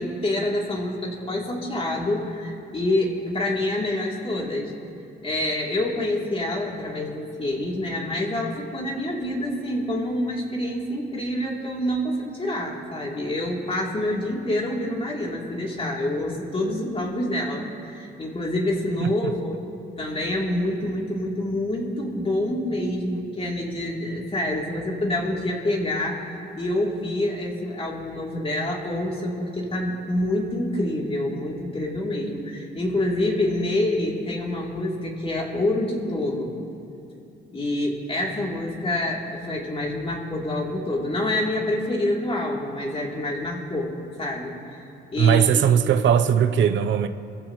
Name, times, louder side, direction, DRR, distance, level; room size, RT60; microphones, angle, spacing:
voice 1, 0.0-4.7 5.2-19.6 20.0-26.3 26.5-36.6 37.5-44.5 45.1-45.6, left 1 dB, 30° left, 3.3 m, -27 dB
voice 2, 45.2-47.1, right 8 dB, 70° right, 0.8 m, -19 dB
25.5 x 14.5 x 3.2 m
cardioid pair, 90°, 20 cm